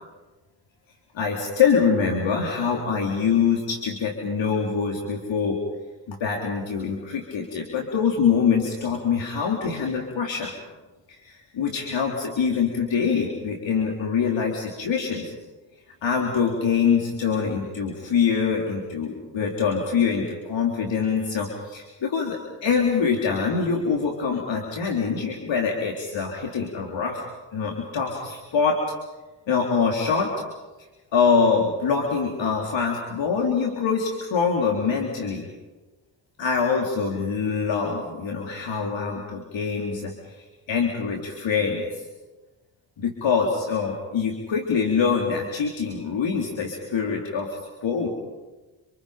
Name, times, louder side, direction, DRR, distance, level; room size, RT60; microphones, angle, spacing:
voice 1, 1.1-5.6 6.1-10.5 11.1-15.3 16.0-27.2 27.5-28.8 29.5-30.3 31.1-35.5 36.4-42.1 43.0-48.1, left 6 dB, 65° left, 0 dB, 4.1 m, -24 dB
29.0 x 27.5 x 5.2 m, 1.2 s
supercardioid pair, 50°, 49 cm